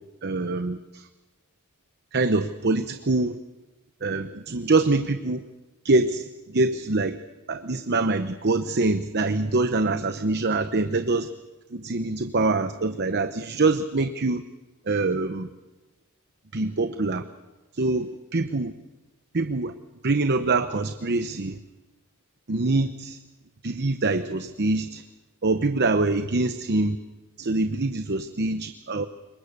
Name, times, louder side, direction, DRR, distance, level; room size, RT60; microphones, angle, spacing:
voice 1, 0.2-1.1 2.1-3.4 4.0-5.4 5.8-7.2 7.5-11.3 11.7-14.4 14.9-15.5 16.5-17.2 17.7-18.7 19.3-19.7 20.0-21.6 22.5-23.2 23.6-25.0 25.4-27.0 27.4-29.1, right 3 dB, 50° right, 9 dB, 0.9 m, -24 dB
27.0 x 23.5 x 6.7 m, 1.2 s
head